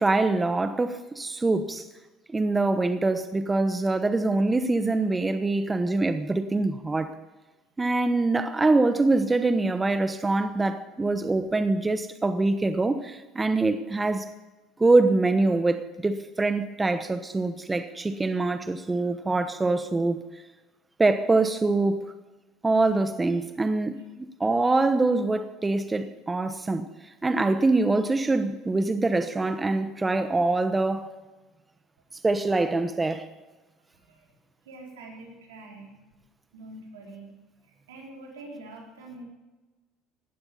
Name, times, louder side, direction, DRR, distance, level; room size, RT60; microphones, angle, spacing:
voice 1, 0.0-1.8 2.3-7.1 7.8-14.2 14.8-20.2 21.0-22.0 22.6-26.9 27.2-31.1 32.2-33.2, right 2 dB, 20° right, 10 dB, 1.0 m, -24 dB
voice 2, 33.9-34.4 34.6-36.0 36.5-37.3 37.6-39.2, right 2 dB, 85° right, -1 dB, 4.5 m, -45 dB
17.5 x 12.0 x 5.5 m, 1.2 s
hypercardioid pair, 75°, 0 cm